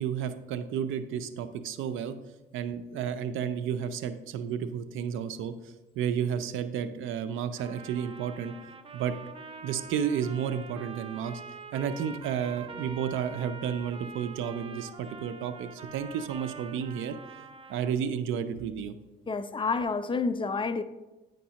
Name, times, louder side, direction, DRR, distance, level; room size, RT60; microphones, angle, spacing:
voice 1, 0.0-2.1 2.5-8.5 8.9-9.1 9.6-11.4 11.7-17.2 17.7-18.9, right 8 dB, 85° right, 0.5 m, -32 dB
Trumpet, 7.6-18.0, right 4 dB, 30° right, 0.5 m, -45 dB
voice 2, 19.3-20.8, left 4 dB, 25° left, 0.4 m, -29 dB
9.1 x 5.2 x 2.9 m
cardioid pair, 90°, 20 cm